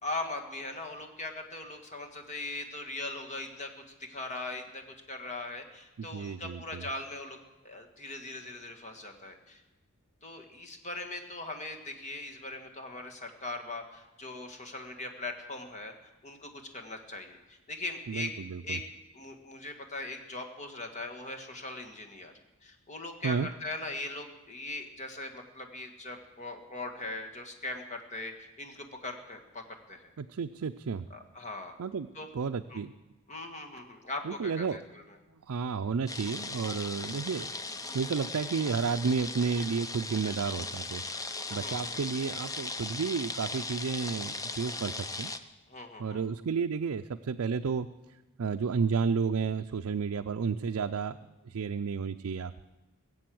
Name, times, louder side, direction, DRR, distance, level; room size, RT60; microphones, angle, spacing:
voice 1, 0.0-3.7 4.0-4.8 5.1-7.4 7.6-9.6 10.2-15.9 16.2-18.3 18.6-18.8 19.1-22.3 22.6-29.6 29.9-30.1 31.1-31.7 32.1-32.3 32.7-32.8 33.3-35.0 41.4-42.0 45.7-46.2, left 2 dB, 35° left, 4 dB, 1.7 m, -40 dB
voice 2, 6.0-6.9 18.1-18.8 23.2-23.5 30.2-31.1 31.8-32.1 32.3-32.9 34.2-34.8 35.4-37.5 37.9-45.3 46.0-47.9 48.4-51.2 51.5-52.6, right 5 dB, 70° right, 7 dB, 0.4 m, -32 dB
sound 1, 36.1-45.4, left 3 dB, 15° left, 0.6 m, -38 dB
20.5 x 7.8 x 7.7 m, 1.1 s
head